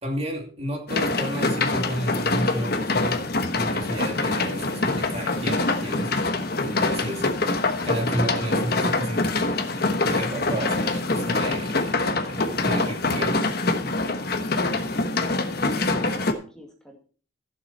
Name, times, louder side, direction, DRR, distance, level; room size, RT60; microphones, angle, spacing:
voice 1, 0.0-3.2 3.5-6.1 6.6-7.3 7.8-9.2 10.0-12.0 12.3-13.4, right 1 dB, 30° right, 2.6 m, -32 dB
sound 1, 0.9-16.3, left 2 dB, 50° left, 1.2 m, -25 dB
voice 2, 14.5-17.0, equal, 5° left, 2.2 m, -48 dB
15.0 x 7.2 x 4.2 m
head